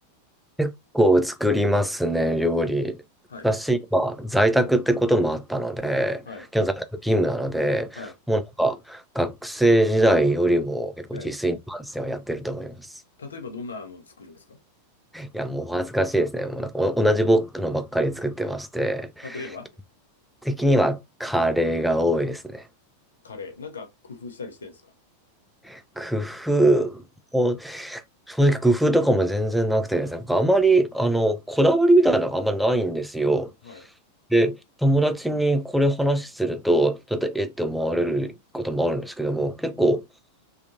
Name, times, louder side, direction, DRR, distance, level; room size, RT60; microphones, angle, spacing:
voice 1, 0.6-3.0 3.4-6.2 6.5-12.9 15.1-19.4 20.4-22.6 25.6-27.0 27.3-28.0 28.3-33.5 34.3-40.0, right 1 dB, ahead, 0.4 m, -22 dB
voice 2, 13.2-14.6 19.2-19.7 23.2-24.9 33.6-33.8 39.7-39.8, left 4 dB, 70° left, 0.7 m, -39 dB
3.5 x 2.4 x 2.6 m
figure-of-eight pair, 90°, 0 cm